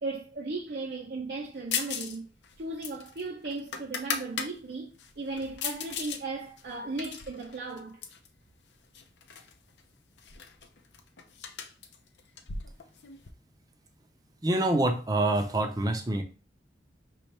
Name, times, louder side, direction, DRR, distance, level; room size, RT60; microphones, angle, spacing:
voice 1, 0.0-2.3 2.6-8.0, right 3 dB, 60° right, 0.6 m, -36 dB
sound 1, 1.7-2.2 2.4-4.5 5.0-6.2 6.6-8.3 8.9-9.5 9.8-9.9 10.2-13.3, left 6 dB, 85° left, 0.6 m, -37 dB
voice 2, 14.4-16.2, right 2 dB, 20° right, 0.6 m, -26 dB
5.3 x 3.1 x 3.2 m
head